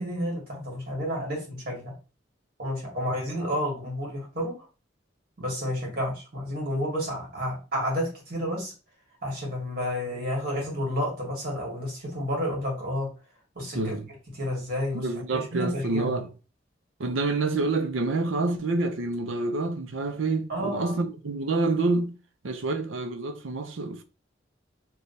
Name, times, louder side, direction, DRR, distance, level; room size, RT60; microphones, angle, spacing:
voice 1, 0.0-1.9 2.6-4.6 5.4-8.7 9.2-13.1 13.6-13.9 14.3-16.2 20.5-21.0, equal, 55° right, 1.7 m, -30 dB
voice 2, 13.7-14.1 14.9-16.3 17.0-22.2 22.4-24.0, right 3 dB, 90° right, 0.6 m, -27 dB
3.1 x 2.3 x 4.1 m
head